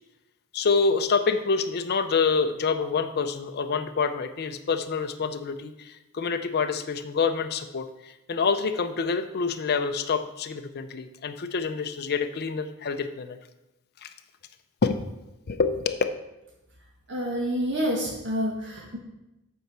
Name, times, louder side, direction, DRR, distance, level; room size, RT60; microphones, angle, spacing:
voice 1, 0.5-13.4 14.0-14.1 14.8-15.0 15.5-16.0, left 5 dB, 45° left, 8 dB, 0.5 m, -27 dB
voice 2, 17.1-19.0, equal, 55° right, -1 dB, 1.3 m, -28 dB
8.3 x 4.5 x 6.0 m, 0.93 s
head